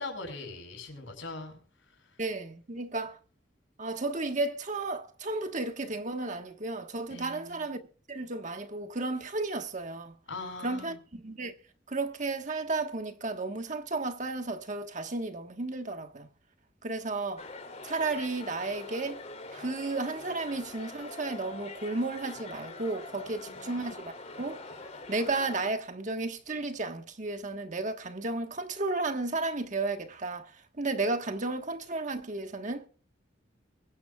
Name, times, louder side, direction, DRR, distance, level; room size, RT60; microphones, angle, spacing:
voice 1, 0.0-1.6 2.0-2.1 7.1-7.7 10.3-11.0 23.4-23.8, left 3 dB, 85° left, 6.7 m, -41 dB
voice 2, 2.2-3.2 3.8-7.8 8.1-10.1 10.6-11.5 11.9-16.3 16.8-17.5 17.8-19.2 19.5-24.6 25.1-30.5 30.8-32.9, right 3 dB, 40° right, 1.3 m, -33 dB
sound 1, 17.4-25.7, left 3 dB, 35° left, 2.9 m, -44 dB
23.0 x 10.5 x 2.3 m
head